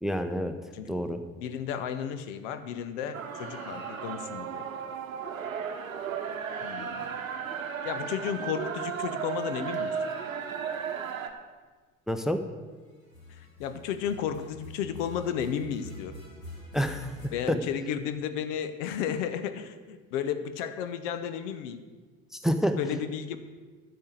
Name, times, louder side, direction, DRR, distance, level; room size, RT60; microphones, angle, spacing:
voice 1, 0.0-0.5 0.9-1.2 12.1-12.4 16.7-17.1 17.5-17.6 22.3-22.8, equal, ahead, 8 dB, 0.7 m, -27 dB
voice 2, 1.4-4.7 6.6-7.1 7.8-9.9 13.4-16.2 17.3-21.8 22.8-23.4, left 8 dB, 65° left, 11 dB, 0.9 m, -33 dB
sound 1, 3.1-11.3, right 7 dB, 85° right, 0.9 m, -35 dB
sound 2, 3.2-4.4 6.1-6.2 6.4-7.5 9.5-10.7 13.0-17.3, left 1 dB, 90° left, 1.6 m, -47 dB
12.0 x 4.7 x 7.9 m, 1.4 s
figure-of-eight pair, 60°, 40 cm